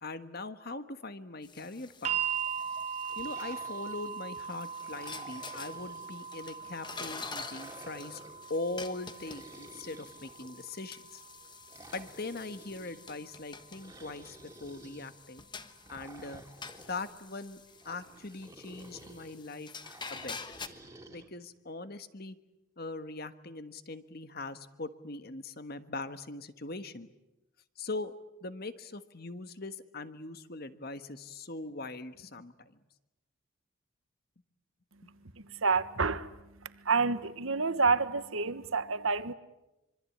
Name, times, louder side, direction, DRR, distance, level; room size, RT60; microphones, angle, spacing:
voice 1, 0.0-2.2 3.2-8.2 8.5-11.2 11.9-15.4 15.9-16.4 16.9-17.6 17.8-19.7 20.1-20.4 21.1-22.4 22.8-27.1 27.8-28.1 28.4-32.8, left 2 dB, 45° left, 1.4 m, -41 dB
sound 1, 1.4-20.7, left 5 dB, 20° left, 1.3 m, -48 dB
sound 2, 2.0-14.1 15.2-15.3, right 7 dB, 30° right, 1.6 m, -40 dB
sound 3, 3.1-4.3 4.8-6.2 6.8-8.4 9.1-10.8 11.7-13.0 13.7-15.1 15.8-17.2 17.8-19.3 19.8-21.3, right 1 dB, 15° right, 2.8 m, -52 dB
voice 2, 35.5-36.3 36.8-39.3, right 4 dB, 70° right, 1.2 m, -28 dB
25.5 x 24.5 x 8.7 m
head